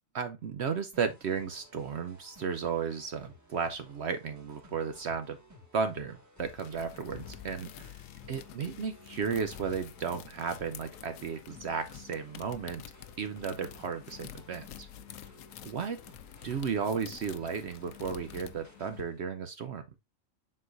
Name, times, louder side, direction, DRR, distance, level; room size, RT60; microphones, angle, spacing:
voice 1, 0.1-5.4 5.7-8.0 8.3-12.8 13.2-14.9 15.6-16.0 16.4-19.8, right 6 dB, 60° right, 0.8 m, -34 dB
sound 1, 0.9-19.2, left 1 dB, 15° right, 1.5 m, -57 dB
sound 2, 6.4-6.8 7.1-10.0 10.4-10.7, left 10 dB, 70° left, 0.4 m, -51 dB
sound 3, 6.5-19.0, left 11 dB, 85° left, 1.0 m, -49 dB
7.5 x 5.8 x 2.5 m
omnidirectional pair, 1.4 m